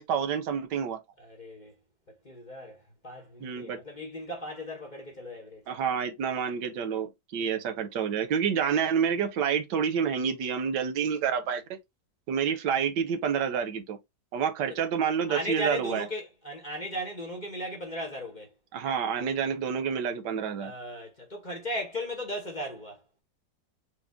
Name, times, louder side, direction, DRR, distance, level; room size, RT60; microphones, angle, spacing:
voice 1, 0.0-1.0 3.4-3.8 5.7-11.6 12.3-14.0 14.3-16.1 18.7-20.7, right 7 dB, 90° right, 1.4 m, -28 dB
voice 2, 1.2-1.8 2.1-5.6 14.7-14.8 15.3-18.5 20.6-23.0, equal, 35° left, 0.9 m, -37 dB
4.8 x 2.2 x 3.5 m
omnidirectional pair, 1.8 m